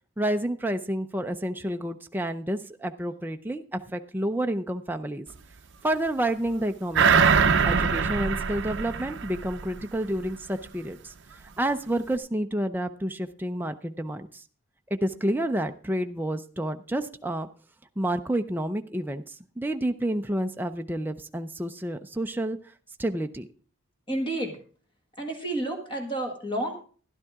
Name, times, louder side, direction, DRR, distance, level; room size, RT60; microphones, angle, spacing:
voice 1, 0.2-5.3 5.8-7.2 7.7-14.4 14.9-17.5 18.0-22.6 23.0-23.5, right 1 dB, 10° right, 6 dB, 0.5 m, -29 dB
sound 1, 6.9-9.9 10.2-10.3, right 6 dB, 55° right, 0.6 m, -22 dB
voice 2, 24.1-24.6 25.2-26.8, right 1 dB, 20° left, 3 dB, 1.5 m, -30 dB
12.5 x 11.5 x 3.6 m, 0.41 s
head